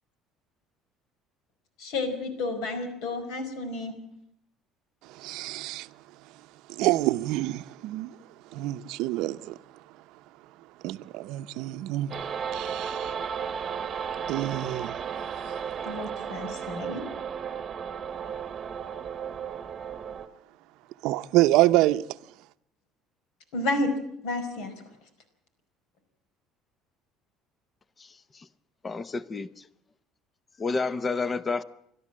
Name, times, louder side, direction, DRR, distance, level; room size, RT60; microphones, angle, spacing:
voice 1, 1.8-3.9 15.8-17.0 23.5-23.9 24.2-24.7, left 2 dB, 75° left, 4.9 m, -31 dB
voice 2, 5.2-5.9 6.8-8.1 8.5-9.5 10.8-12.1 12.5-13.1 14.3-14.9 21.0-22.0, right 16 dB, 70° right, 0.7 m, -26 dB
sound 1, 12.1-20.3, right 7 dB, 30° right, 1.2 m, -34 dB
voice 3, 28.0-28.5 28.8-29.6 30.6-31.6, left 4 dB, 20° left, 0.7 m, -30 dB
29.5 x 12.5 x 7.6 m
cardioid pair, 160°, 0 cm